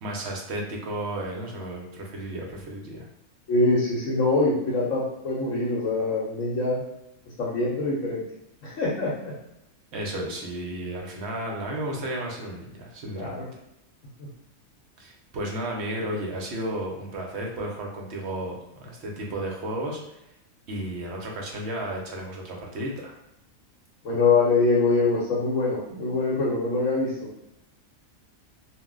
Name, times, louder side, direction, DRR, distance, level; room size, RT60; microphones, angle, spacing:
voice 1, 0.0-3.0 9.9-13.4 15.0-20.0 20.7-23.1, right 1 dB, 60° right, -1 dB, 0.9 m, -33 dB
voice 2, 3.5-6.8 7.4-8.2 8.6-9.3 13.2-13.5 14.2-14.3 24.0-27.3, left 3 dB, 75° left, -5 dB, 1.1 m, -24 dB
2.5 x 2.0 x 3.6 m, 0.85 s
omnidirectional pair, 1.4 m